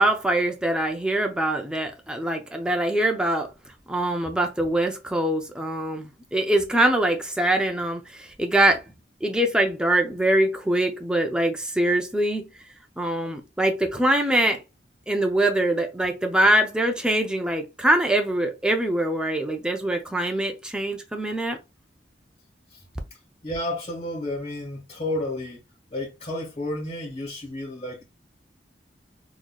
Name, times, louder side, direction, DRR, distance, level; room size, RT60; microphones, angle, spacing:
voice 1, 0.0-3.5 3.9-8.8 9.2-12.5 13.0-14.6 15.1-21.6, right 1 dB, 5° right, 0.5 m, -23 dB
voice 2, 23.4-25.6 25.9-28.0, left 1 dB, 35° left, 1.7 m, -31 dB
3.9 x 3.0 x 2.3 m
head